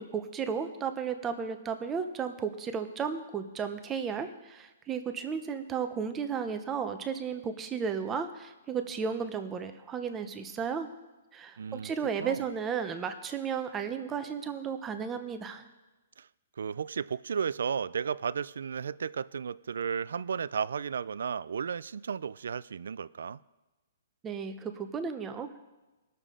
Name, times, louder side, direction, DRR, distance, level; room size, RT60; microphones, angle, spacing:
voice 1, 0.0-10.9 11.3-15.6 24.2-25.5, right 6 dB, 10° right, 0.5 m, -34 dB
voice 2, 11.6-11.9 12.2-12.4 16.2-16.3 16.6-23.4, right 7 dB, 80° right, 0.3 m, -34 dB
19.5 x 6.7 x 3.7 m
hypercardioid pair, 175°, 0 cm